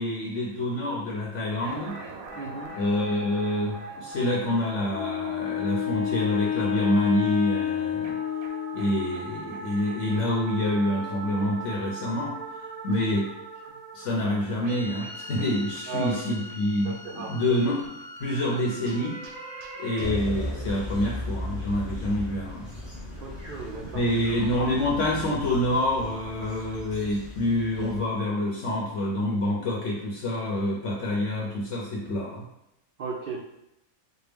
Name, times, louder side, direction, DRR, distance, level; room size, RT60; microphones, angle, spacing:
voice 1, 0.0-2.0 2.8-8.2 8.7-12.4 12.8-13.3 13.9-17.9 18.2-19.2 19.8-22.7 23.9-32.5, left 1 dB, 65° left, -3 dB, 0.9 m, -27 dB
sound 1, 1.6-20.1, right 2 dB, 90° right, 1.1 m, -41 dB
voice 2, 2.4-2.7 13.7-13.8 15.9-16.4 16.8-17.4 23.2-24.0 33.0-33.4, right 4 dB, 70° right, -1 dB, 0.5 m, -35 dB
Wind instrument woodwind instrument, 4.9-9.1, left 10 dB, 90° left, 1.0 m, -29 dB
sound 2, 20.0-28.0, left 1 dB, 30° right, 1.4 m, -36 dB
4.4 x 2.2 x 3.4 m, 0.85 s
omnidirectional pair, 1.4 m